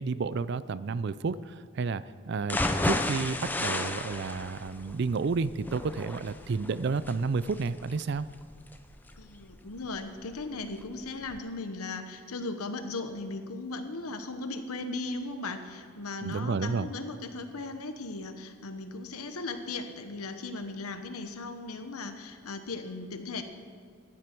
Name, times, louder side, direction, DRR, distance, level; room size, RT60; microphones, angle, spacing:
voice 1, 0.0-8.3 16.2-16.9, right 4 dB, 50° right, 16 dB, 0.4 m, -31 dB
sound 1, 2.4-10.4 10.8-10.9 11.3-11.4, left 1 dB, 10° left, 0.5 m, -33 dB
voice 2, 9.2-23.4, left 3 dB, 85° left, 8 dB, 1.1 m, -37 dB
15.0 x 11.0 x 4.5 m, 2.2 s
head